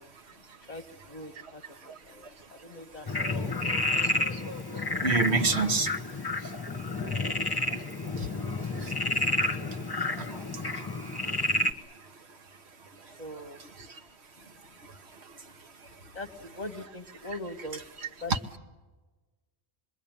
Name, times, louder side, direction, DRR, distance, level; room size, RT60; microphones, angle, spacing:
voice 1, 0.7-3.6 13.1-13.6 16.1-17.9 18.2-18.6, left 1 dB, 40° left, 1.1 m, -42 dB
voice 2, 1.4-2.9 3.6-6.9 7.8-11.5 11.8-12.4 12.8-13.2 13.6-14.0 14.4-14.5 14.8-16.0 18.3-18.4, right 4 dB, 75° right, 1.6 m, -35 dB
Frog, 3.1-11.7, left 2 dB, 20° left, 1.3 m, -30 dB
26.5 x 22.0 x 8.8 m
omnidirectional pair, 1.1 m